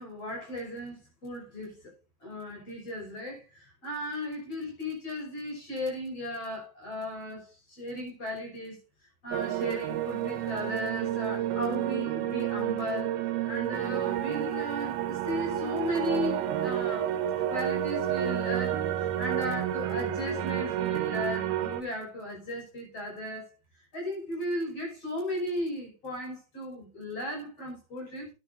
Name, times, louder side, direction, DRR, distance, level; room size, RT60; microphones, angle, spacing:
voice 1, 0.0-1.9 2.2-8.8 9.2-13.2 13.5-23.5 23.9-28.3, equal, 35° left, 6.5 m, -36 dB
sound 1, 9.3-21.8, right 11 dB, 75° right, 2.8 m, -30 dB
12.0 x 11.5 x 2.7 m
omnidirectional pair, 4.8 m